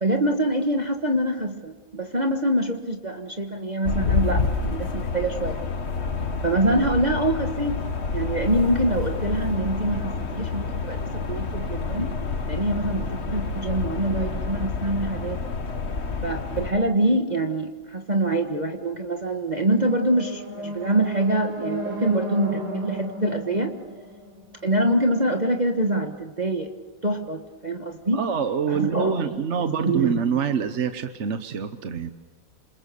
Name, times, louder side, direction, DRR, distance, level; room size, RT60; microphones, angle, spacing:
voice 1, 0.0-5.6 6.4-7.8 8.1-12.1 12.5-15.4 16.2-23.7 24.6-26.7 27.0-28.2 28.7-30.2, right 1 dB, 25° right, 3 dB, 1.4 m, -25 dB
sound 1, 3.9-16.7, left 4 dB, 40° left, 1.5 m, -28 dB
sound 2, 19.7-24.8, equal, 65° right, 7.2 m, -33 dB
voice 2, 28.1-32.1, right 7 dB, 45° right, 9 dB, 1.1 m, -25 dB
28.0 x 27.0 x 6.9 m, 1.2 s
omnidirectional pair, 2.0 m